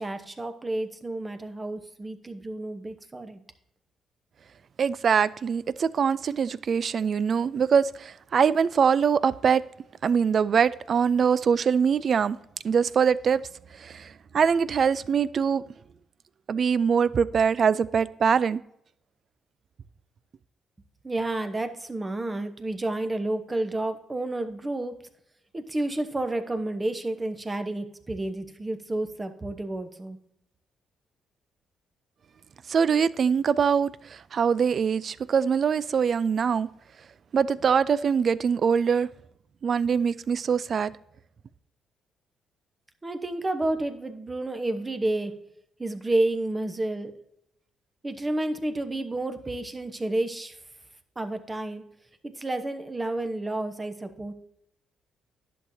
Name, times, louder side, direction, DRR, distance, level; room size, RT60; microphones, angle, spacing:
voice 1, 0.0-3.4 21.0-25.0 25.5-30.2 43.0-45.3 45.8-47.1 48.0-50.6 51.2-51.8 52.2-54.3, right 2 dB, 20° right, 0.9 m, -30 dB
voice 2, 4.8-9.6 10.0-12.4 12.6-13.4 13.8-15.6 16.5-18.6 32.7-36.7 37.3-39.1 39.6-40.9, right 6 dB, 50° right, 0.4 m, -23 dB
10.5 x 6.5 x 2.7 m
cardioid pair, 90°, 0 cm